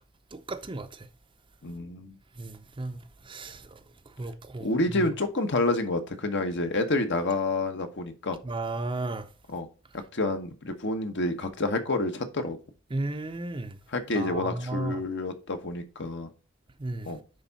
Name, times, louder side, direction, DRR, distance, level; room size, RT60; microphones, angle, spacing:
voice 1, 0.3-1.1 2.4-5.1 8.4-9.3 12.9-13.8 14.1-15.0 16.8-17.2, right 2 dB, 25° right, 0.6 m, -35 dB
voice 2, 1.6-2.1 4.6-8.4 9.5-9.7 9.9-12.6 13.9-16.3 17.0-17.2, left 2 dB, 60° left, 1.1 m, -28 dB
10.0 x 3.6 x 4.1 m
head